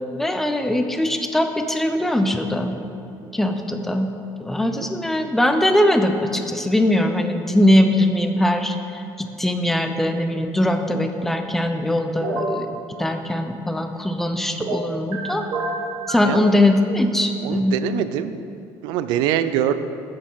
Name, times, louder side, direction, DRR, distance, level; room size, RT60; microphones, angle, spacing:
voice 1, 0.0-2.7 3.3-4.1 4.4-15.4 16.1-17.7, left 1 dB, 5° left, 6 dB, 0.4 m, -21 dB
sound 1, 12.2-12.6 14.6-15.2 15.5-16.3, right 2 dB, 65° right, 1.4 m, -27 dB
voice 2, 17.4-18.4 18.8-19.7, right 11 dB, 90° right, 12 dB, 0.4 m, -24 dB
6.9 x 5.2 x 5.5 m, 2.6 s
cardioid pair, 145°, 7 cm